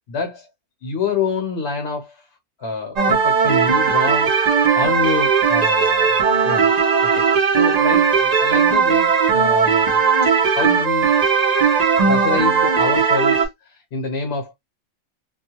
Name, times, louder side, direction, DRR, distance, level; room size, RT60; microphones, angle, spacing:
voice 1, 0.1-0.5 0.8-2.3 2.6-4.4 4.7-6.7 7.0-11.2 12.0-14.5, left 4 dB, 55° left, 1.0 m, -27 dB
sound 1, 3.0-13.5, right 6 dB, 60° right, 0.4 m, -17 dB
2.3 x 2.2 x 2.9 m
omnidirectional pair, 1.3 m